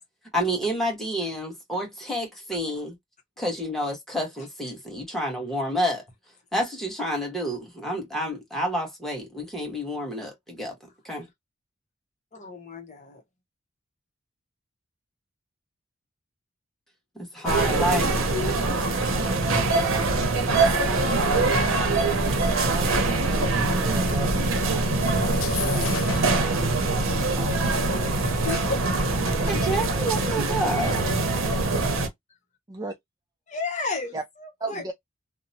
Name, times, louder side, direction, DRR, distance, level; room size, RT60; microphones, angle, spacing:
voice 1, 0.3-3.0 3.4-6.0 6.5-10.7 11.0-11.3 17.1-18.1 29.5-31.0, equal, ahead, 1.2 m, -29 dB
voice 2, 12.3-13.2 28.4-28.8 29.3-29.4 30.0-30.4 33.5-34.1 34.4-34.9, left 4 dB, 40° left, 0.9 m, -33 dB
sound 1, 17.5-32.1, right 2 dB, 75° right, 0.7 m, -23 dB
voice 3, 22.6-26.9 27.3-27.6 32.7-32.9 34.1-34.2 34.6-34.9, right 3 dB, 20° right, 0.4 m, -37 dB
sound 2, 25.3-26.4, left 9 dB, 80° left, 0.5 m, -34 dB
2.9 x 2.1 x 2.6 m
head